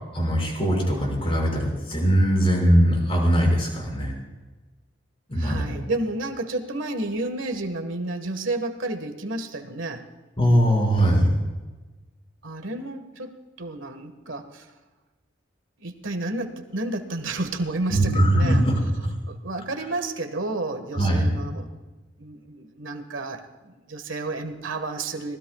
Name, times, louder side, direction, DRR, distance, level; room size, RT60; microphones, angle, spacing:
voice 1, 0.1-4.1 5.3-5.8 10.4-11.3 17.9-18.7 20.9-21.3, equal, 30° left, -1 dB, 5.8 m, -21 dB
voice 2, 5.4-10.0 12.4-14.7 15.8-18.6 19.3-21.7 22.2-25.4, right 2 dB, 85° right, 6 dB, 1.6 m, -31 dB
25.5 x 19.0 x 2.4 m, 1.2 s
head